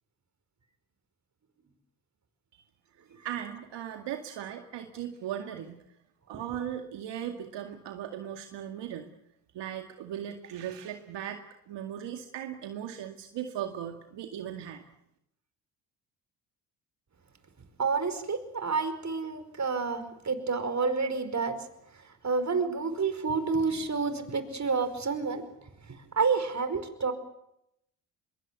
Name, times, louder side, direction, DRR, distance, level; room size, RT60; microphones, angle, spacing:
voice 1, 3.2-5.8 6.3-9.1 9.5-11.4 11.7-14.8, right 10 dB, 70° right, 5 dB, 2.2 m, -38 dB
voice 2, 17.8-21.6 21.9-25.4 25.9-27.1, right 4 dB, 40° right, 10 dB, 5.0 m, -29 dB
24.0 x 22.5 x 8.3 m, 0.81 s
supercardioid pair, 60°, 43 cm